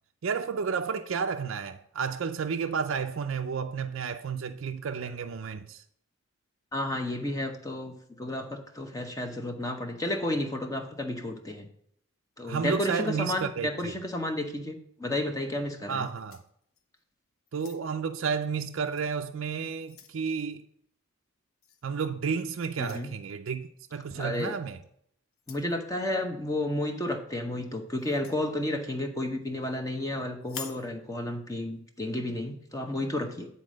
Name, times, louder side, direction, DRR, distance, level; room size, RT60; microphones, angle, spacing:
voice 1, 0.2-5.8 12.4-13.9 15.9-16.4 17.5-20.6 21.8-24.8, right 6 dB, 65° right, 0.4 m, -31 dB
voice 2, 6.7-11.7 12.4-16.0 22.8-23.1 24.2-24.5 25.5-33.5, left 1 dB, 15° left, 0.8 m, -32 dB
sound 1, 15.9-17.0 17.5-18.1 18.9-19.1 19.5-20.2 21.6-21.8 22.7-23.1 24.4-24.6 25.3-25.7 28.0-28.4 30.4-30.9, left 6 dB, 80° left, 0.9 m, -47 dB
9.6 x 4.2 x 6.2 m
head